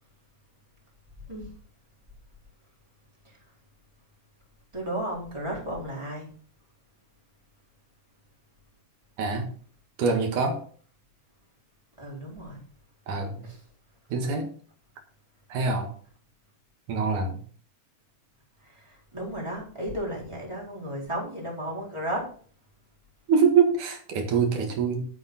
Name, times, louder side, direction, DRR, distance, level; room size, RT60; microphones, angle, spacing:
voice 1, 4.7-6.3 12.0-12.6 13.4-13.6 18.8-22.3, right 1 dB, 10° right, -3 dB, 4.4 m, -34 dB
voice 2, 9.2-9.5 10.0-10.6 13.1-13.5 14.1-14.5 15.5-15.9 16.9-17.4 23.3-25.1, right 5 dB, 80° right, 4 dB, 3.2 m, -24 dB
11.0 x 9.0 x 4.0 m, 0.44 s
omnidirectional pair, 3.5 m